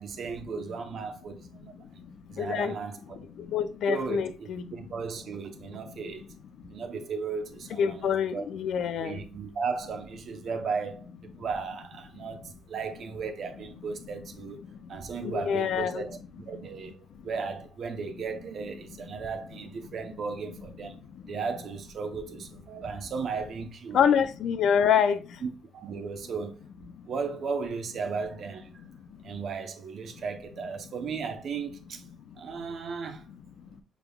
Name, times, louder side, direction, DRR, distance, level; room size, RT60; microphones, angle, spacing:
voice 1, 0.0-1.7 2.3-3.2 3.9-6.2 6.7-8.5 9.0-14.6 14.9-17.0 17.2-21.0 21.3-24.3 25.4-26.6 27.1-28.7 29.2-32.0 32.4-33.2, right 5 dB, 60° right, 0.7 m, -35 dB
voice 2, 2.4-2.7 3.5-4.6 7.8-9.2 15.2-16.0 23.9-25.2, left 7 dB, 75° left, 0.5 m, -25 dB
6.0 x 3.5 x 2.3 m
cardioid pair, 90°, 0 cm